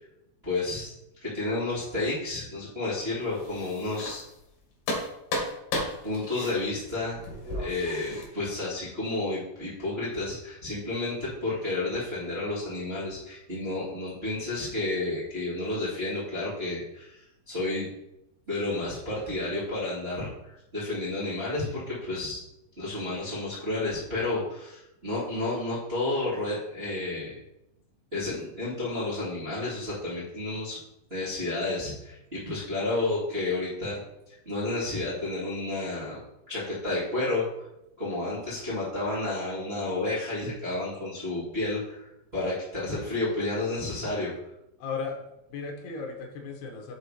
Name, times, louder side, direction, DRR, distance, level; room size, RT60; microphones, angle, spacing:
voice 1, 0.4-0.9 1.2-4.2 6.0-7.2 7.6-17.2 17.4-17.9 18.5-22.4 22.8-27.4 28.1-30.8 31.1-34.0 34.3-36.2 36.5-37.4 38.0-44.3, left 2 dB, 50° right, -9 dB, 0.7 m, -31 dB
sound 1, 3.2-4.5 4.8-8.2, left 1 dB, 55° left, 2.9 m, -34 dB
voice 2, 6.1-6.5 8.0-8.3 44.8-45.2 45.5-46.9, left 4 dB, 75° left, 1 dB, 2.5 m, -37 dB
7.6 x 4.9 x 4.2 m, 0.86 s
omnidirectional pair, 6.0 m